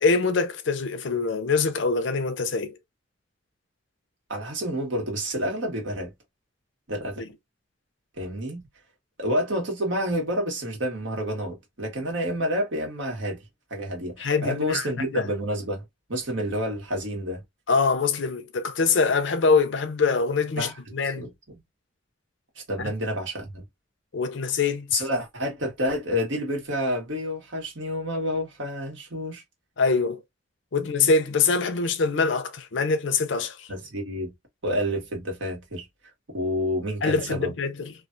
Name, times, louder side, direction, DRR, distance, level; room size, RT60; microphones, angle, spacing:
voice 1, 0.0-2.8 7.2-7.3 14.2-15.3 17.7-21.3 22.8-22.9 24.1-25.0 29.8-30.2 30.7-33.7 37.0-37.9, left 4 dB, 80° left, 0.6 m, -24 dB
voice 2, 4.3-6.1 6.9-7.2 8.2-8.7 9.2-13.4 13.7-15.8 16.1-17.4 20.6-20.8 21.1-21.6 22.5-23.6 24.9-29.4 30.8-30.9 33.7-34.3 34.6-35.9 36.3-37.5, equal, 90° right, 1.6 m, -29 dB
3.2 x 2.5 x 2.6 m
head